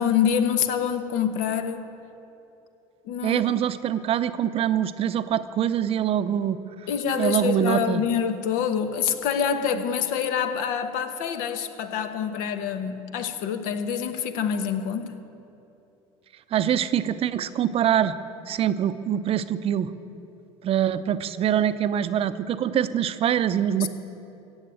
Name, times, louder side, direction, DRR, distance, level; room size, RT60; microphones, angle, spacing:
voice 1, 0.0-1.9 3.0-3.4 6.9-15.2 23.8-23.9, left 8 dB, 75° left, 8 dB, 1.1 m, -26 dB
voice 2, 3.2-6.6 7.2-8.0 16.5-18.2 18.5-19.9 20.6-23.9, right 10 dB, 45° right, 13 dB, 0.6 m, -24 dB
15.0 x 7.3 x 9.0 m, 2.9 s
supercardioid pair, 110°, 14 cm